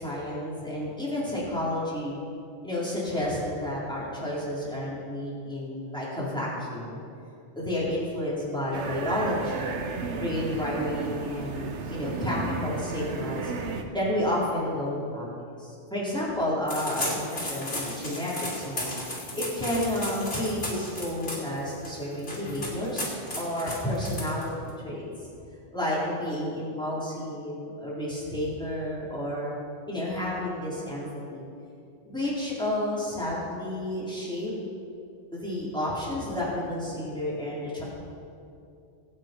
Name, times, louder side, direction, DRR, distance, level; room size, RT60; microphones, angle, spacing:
voice 1, 0.0-2.2 2.6-6.9 7.5-9.8 10.1-15.3 15.6-24.5 24.8-25.1 25.7-29.6 29.9-31.5 32.0-34.5 35.3-37.8, left 1 dB, 5° left, -8 dB, 4.3 m, -31 dB
sound 1, 8.7-13.8, right 4 dB, 80° right, 1.3 m, -33 dB
sound 2, 16.7-24.7, left 1 dB, 55° left, 3.7 m, -35 dB
22.5 x 9.0 x 4.7 m, 2.5 s
omnidirectional pair, 1.2 m